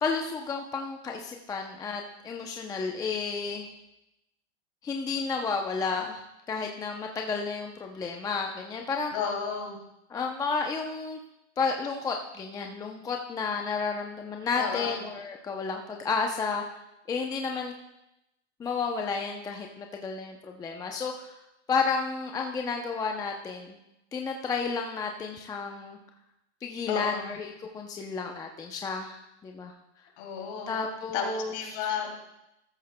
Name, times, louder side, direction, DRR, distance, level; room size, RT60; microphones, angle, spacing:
voice 1, 0.0-3.7 4.8-6.2 6.5-9.1 10.1-11.2 11.6-16.6 17.1-17.7 18.6-21.3 21.7-23.8 24.1-26.0 26.6-29.7 30.7-31.8, left 4 dB, 10° left, 3 dB, 0.5 m, -32 dB
voice 2, 9.1-9.8 14.5-15.0 26.9-27.3 30.2-30.7 31.1-32.3, left 6 dB, 45° left, 1 dB, 2.8 m, -33 dB
13.5 x 13.0 x 2.2 m, 0.89 s
hypercardioid pair, 135°, 34 cm